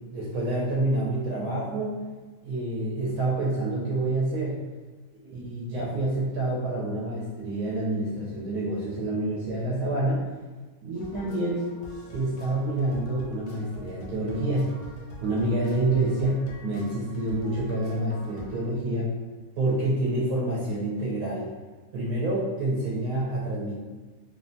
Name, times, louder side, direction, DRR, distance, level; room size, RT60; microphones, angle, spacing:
voice 1, 0.0-2.0 2.4-4.6 5.3-10.2 10.8-11.7 12.1-14.7 15.2-19.1 19.6-21.5 21.9-23.7, right 2 dB, 80° right, -6 dB, 1.1 m, -27 dB
sound 1, 10.9-18.7, left 1 dB, 90° left, 1.1 m, -45 dB
3.1 x 2.1 x 2.6 m, 1.4 s
omnidirectional pair, 1.6 m